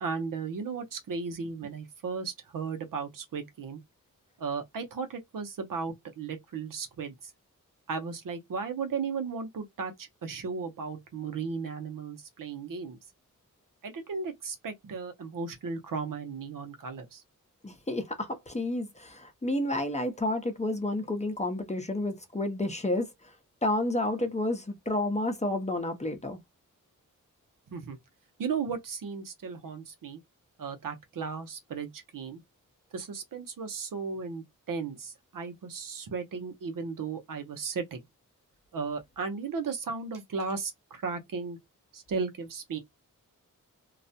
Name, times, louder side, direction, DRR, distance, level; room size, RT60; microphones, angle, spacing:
voice 1, 0.0-3.8 4.4-7.3 7.9-13.0 13.8-17.2 27.7-28.0 28.4-30.2 30.6-32.4 32.9-38.0 38.7-41.6 41.9-42.8, right 5 dB, 80° right, 0.7 m, -35 dB
voice 2, 17.6-23.3 23.6-26.4, left 1 dB, 20° left, 0.7 m, -30 dB
2.3 x 2.1 x 2.6 m
wide cardioid pair, 80°, 33 cm